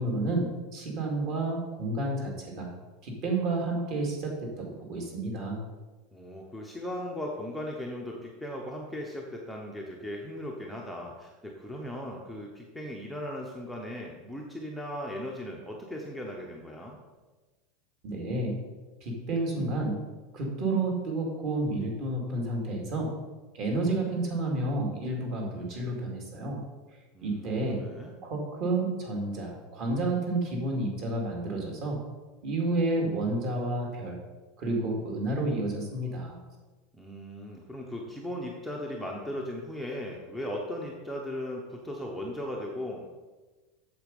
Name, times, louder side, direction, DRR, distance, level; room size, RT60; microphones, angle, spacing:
voice 1, 0.0-2.7 3.0-5.6 18.0-18.6 19.0-20.0 20.3-23.1 23.5-26.6 27.2-27.8 28.2-32.0 32.4-34.2 34.6-36.4, right 2 dB, 35° right, 0 dB, 2.2 m, -30 dB
voice 2, 6.1-17.0 27.1-28.1 36.9-43.1, left 1 dB, ahead, -1 dB, 0.7 m, -37 dB
7.9 x 7.3 x 5.3 m, 1.2 s
supercardioid pair, 175°, 0 cm